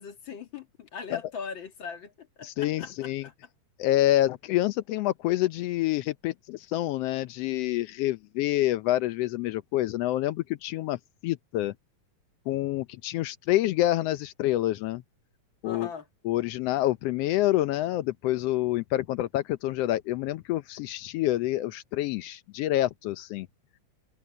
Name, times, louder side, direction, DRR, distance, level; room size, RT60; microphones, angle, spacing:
voice 1, 0.0-3.3 15.6-16.1, left 6 dB, 45° left, 2.2 m, -40 dB
voice 2, 2.4-3.2 3.8-11.7 12.5-15.0 15.6-15.9 16.2-23.5, left 15 dB, 90° left, 1.4 m, -27 dB
omnidirectional pair, 3.6 m